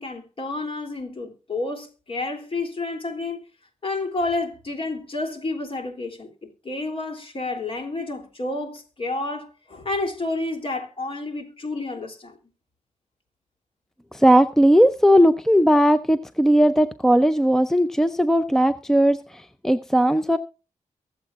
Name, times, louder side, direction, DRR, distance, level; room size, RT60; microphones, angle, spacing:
voice 1, 0.0-3.4 3.8-6.3 6.6-12.3, left 2 dB, 45° left, 3.2 m, -30 dB
voice 2, 14.1-20.4, equal, 5° left, 0.6 m, -18 dB
23.0 x 7.9 x 2.5 m
wide cardioid pair, 90°, 13 cm